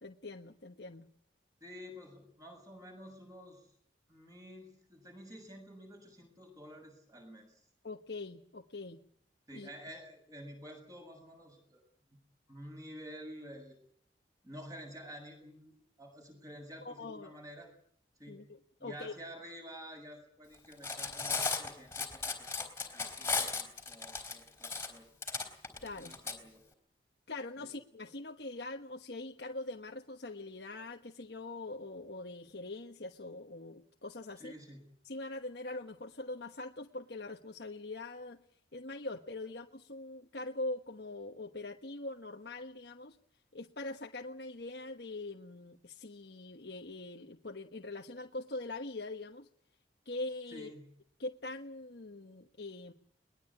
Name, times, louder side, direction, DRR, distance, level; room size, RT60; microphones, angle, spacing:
voice 1, 0.0-1.1 7.8-9.0 9.5-9.7 16.8-17.3 18.3-19.1 25.8-26.1 27.3-34.5 35.0-38.4 38.7-43.2 43.5-49.5 50.0-50.7 51.2-52.9, left 2 dB, 60° left, 2 dB, 1.3 m, -43 dB
voice 2, 1.6-3.7 4.1-7.5 9.5-11.8 12.5-13.8 14.4-17.7 18.2-18.4 18.8-22.5 22.9-25.1 25.3-25.5 25.7-26.6 27.6-27.7 34.4-34.9 50.5-50.9, equal, 20° right, 4 dB, 7.5 m, -50 dB
Cutlery silverware, 20.7-26.3, left 4 dB, 15° left, 3.8 m, -35 dB
22.0 x 20.5 x 8.6 m, 0.64 s
head